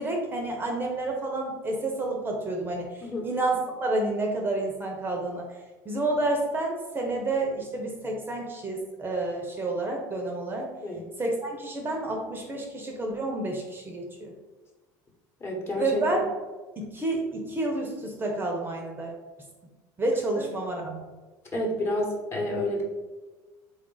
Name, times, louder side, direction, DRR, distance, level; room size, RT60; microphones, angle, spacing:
voice 1, 0.0-5.5 5.9-10.7 11.2-14.3 15.8-16.2 16.8-19.1 20.0-21.1, right 2 dB, 25° right, 1 dB, 0.6 m, -29 dB
voice 2, 15.4-16.0 21.5-22.8, left 1 dB, 30° left, -2 dB, 1.1 m, -29 dB
3.7 x 2.4 x 3.8 m, 1.2 s
supercardioid pair, 105°, 9 cm